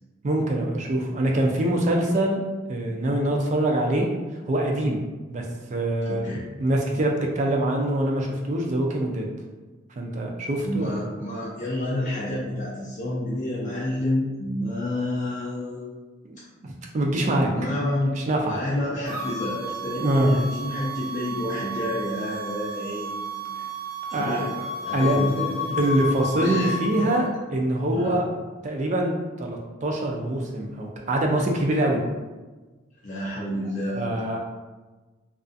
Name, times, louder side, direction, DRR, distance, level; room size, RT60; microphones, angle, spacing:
voice 1, 0.2-2.4 2.7-5.0 5.3-5.4 5.7-9.3 10.0-11.0 16.2-16.4 16.9-17.5 18.1-18.6 20.0-20.4 24.1-24.7 24.9-25.4 25.7-32.0 33.9-34.4, right 1 dB, 35° right, 0 dB, 0.3 m, -24 dB
voice 2, 6.1-6.4 10.6-15.9 17.5-18.1 18.5-23.6 24.1-24.5 24.8-25.8 26.4-27.1 27.9-28.2 33.0-34.2, left 1 dB, 40° left, -8 dB, 0.4 m, -29 dB
sound 1, 19.1-27.2, equal, 50° right, 1.1 m, -32 dB
2.4 x 2.3 x 2.5 m, 1.2 s
head